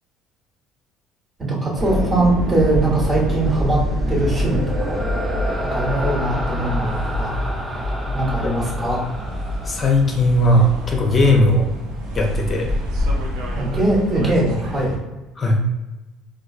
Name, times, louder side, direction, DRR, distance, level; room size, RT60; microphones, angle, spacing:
voice 1, 1.5-3.8 4.1-5.0 5.7-7.4 8.1-9.0 13.5-15.0, right 2 dB, 35° right, -3 dB, 1.3 m, -21 dB
sound 1, 1.7-15.0, left 1 dB, 70° right, 0.6 m, -26 dB
sound 2, 3.2-10.6, right 1 dB, 15° right, 0.6 m, -29 dB
voice 2, 9.6-11.7 12.1-12.7 15.4-15.6, left 1 dB, 35° left, 1 dB, 0.6 m, -17 dB
4.1 x 2.3 x 2.4 m, 1.1 s
hypercardioid pair, 65°, 0 cm